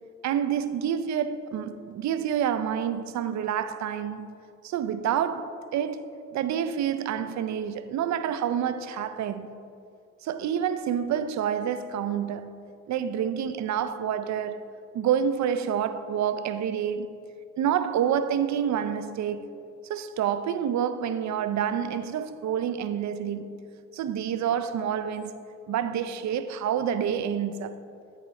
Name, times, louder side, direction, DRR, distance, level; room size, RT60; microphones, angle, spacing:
voice 1, 0.2-9.6 10.2-12.6 12.9-14.7 14.9-17.2 17.6-19.6 19.9-23.6 23.9-25.3 25.7-27.7, right 8 dB, 65° right, 0.4 m, -28 dB
8.7 x 4.2 x 4.0 m
hypercardioid pair, 40°, 31 cm